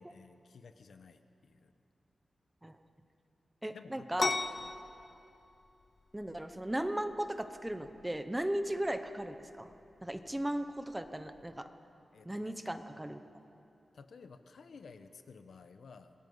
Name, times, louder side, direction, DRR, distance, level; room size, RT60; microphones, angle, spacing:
voice 1, 0.0-1.7 3.7-4.1 12.1-12.5 13.9-16.1, left 5 dB, 75° left, 9 dB, 1.1 m, -54 dB
voice 2, 3.6-4.3 6.1-9.7 10.0-11.7 12.2-13.2, right 1 dB, 10° right, 8 dB, 0.9 m, -36 dB
sound 1, 4.2-11.6, left 3 dB, 45° left, 0.7 m, -41 dB
26.5 x 20.5 x 5.6 m, 2.7 s
wide cardioid pair, 165°, 0 cm